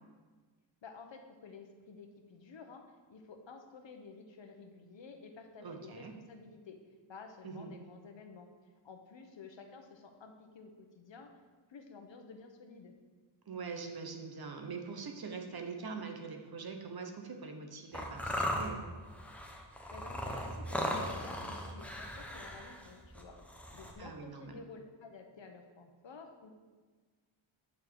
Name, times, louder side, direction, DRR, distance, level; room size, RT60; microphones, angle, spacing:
voice 1, 0.8-6.8 7.1-11.4 11.7-12.9 19.9-23.4 23.7-26.5, left 4 dB, 65° left, 5 dB, 1.1 m, -52 dB
voice 2, 5.6-6.1 7.4-7.7 13.5-18.8 24.0-24.6, right 5 dB, 50° right, 4 dB, 1.1 m, -43 dB
sound 1, 17.9-23.9, equal, 5° left, 1.0 m, -38 dB
9.4 x 4.7 x 7.7 m, 1.4 s
wide cardioid pair, 160°, 47 cm